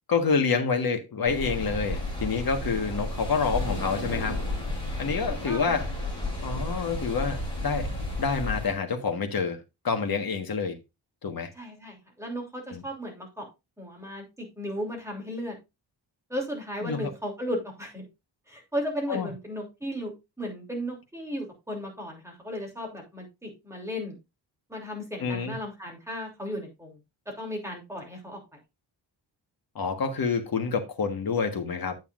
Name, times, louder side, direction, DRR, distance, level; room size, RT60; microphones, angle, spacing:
voice 1, 0.1-4.4 5.0-5.9 6.4-7.9 8.2-10.8 11.2-11.5 12.7-12.8 16.8-17.1 19.1-19.3 25.2-25.6 29.7-32.0, left 5 dB, 55° left, 1.5 m, -28 dB
sound 1, 1.2-8.7, left 2 dB, 10° left, 6.4 m, -32 dB
voice 2, 11.5-13.5 13.8-15.6 16.3-18.1 18.5-20.1 20.4-24.2 24.7-27.0 27.4-28.4, equal, 5° right, 3.1 m, -35 dB
9.2 x 8.2 x 2.5 m
wide cardioid pair, 170°, 44 cm